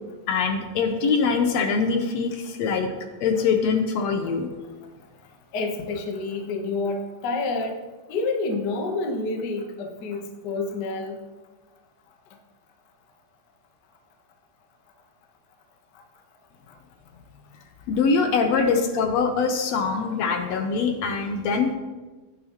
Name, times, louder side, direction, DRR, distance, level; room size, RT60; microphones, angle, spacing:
voice 1, 0.3-2.9 3.2-4.5 17.9-21.8, left 5 dB, 70° left, 5 dB, 1.7 m, -23 dB
voice 2, 5.5-7.8 8.1-11.2, left 3 dB, 85° left, 3 dB, 0.9 m, -28 dB
15.0 x 10.5 x 3.0 m, 1.2 s
omnidirectional pair, 3.9 m